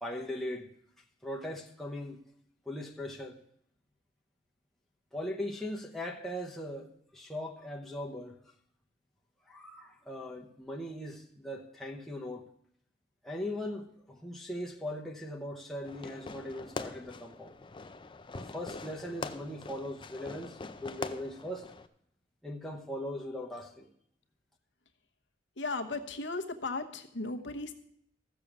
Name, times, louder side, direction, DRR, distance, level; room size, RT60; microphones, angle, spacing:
voice 1, 0.0-0.7 1.2-2.2 2.7-3.4 5.1-8.3 9.5-12.4 13.2-17.5 18.3-21.7 22.4-23.9, left 1 dB, ahead, 0.9 m, -39 dB
Fireworks, 15.8-21.9, left 3 dB, 25° left, 0.5 m, -43 dB
voice 2, 25.6-27.7, left 3 dB, 70° left, 1.0 m, -36 dB
14.5 x 6.9 x 6.1 m
head